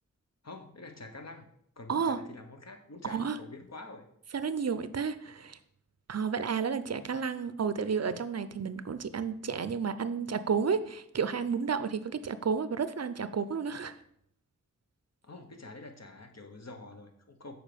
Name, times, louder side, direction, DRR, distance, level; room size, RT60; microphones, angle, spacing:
voice 1, 0.4-1.5 1.8-4.1 15.2-17.5, left 2 dB, 55° left, 5 dB, 1.1 m, -47 dB
voice 2, 1.9-2.2 3.0-3.4 4.3-5.6 6.1-14.0, right 6 dB, 55° right, 13 dB, 0.5 m, -31 dB
7.4 x 4.7 x 5.1 m, 0.72 s
wide cardioid pair, 55°, 32 cm